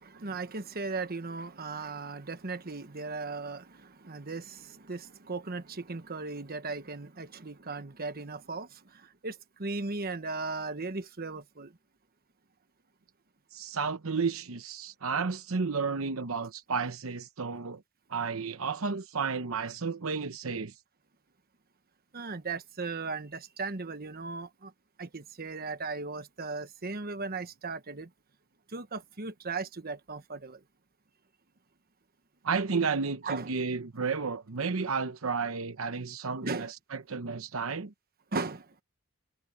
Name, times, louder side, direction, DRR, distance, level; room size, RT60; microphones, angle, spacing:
voice 1, 0.0-11.7 22.1-24.7 25.0-28.1 28.7-30.6 33.2-33.5 36.4-36.7 38.3-38.7, right 3 dB, 45° right, 1.3 m, -37 dB
voice 2, 13.5-17.8 18.1-20.7 32.4-37.9, right 5 dB, 80° right, 0.9 m, -32 dB
head